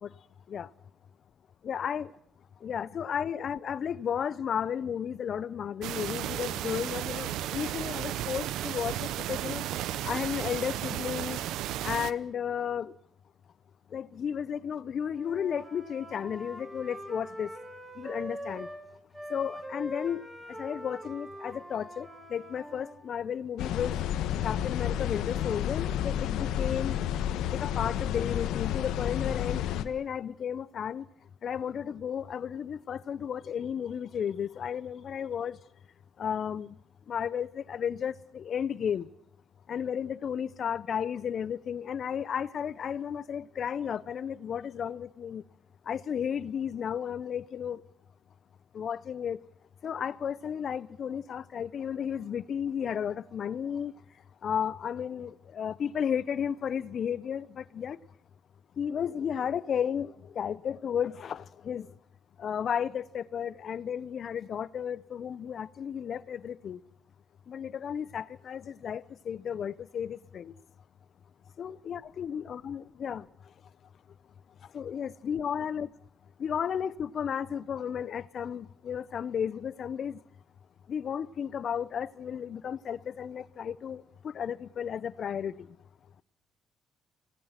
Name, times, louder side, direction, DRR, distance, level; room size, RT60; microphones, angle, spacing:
voice 1, 1.6-2.1 2.6-9.6 10.0-11.4 11.8-12.9 13.9-17.5 18.0-18.7 19.3-20.2 20.6-24.0 24.4-27.0 27.6-31.0 31.4-35.6 36.2-36.7 37.1-39.1 39.7-45.4 45.9-47.8 48.7-49.4 49.8-53.9 54.4-58.0 58.8-61.9 62.4-66.8 67.5-70.5 71.6-73.2 74.7-75.9 76.4-80.2 80.9-85.5, left 8 dB, 60° left, 0.8 m, -33 dB
sound 1, 5.8-12.1, right 12 dB, 90° right, 0.8 m, -34 dB
Wind instrument woodwind instrument, 15.1-18.8 19.1-23.0, equal, 10° right, 6.7 m, -43 dB
sound 2, 23.6-29.8, left 10 dB, 90° left, 1.3 m, -31 dB
26.0 x 18.0 x 5.9 m
cardioid pair, 90°, 0 cm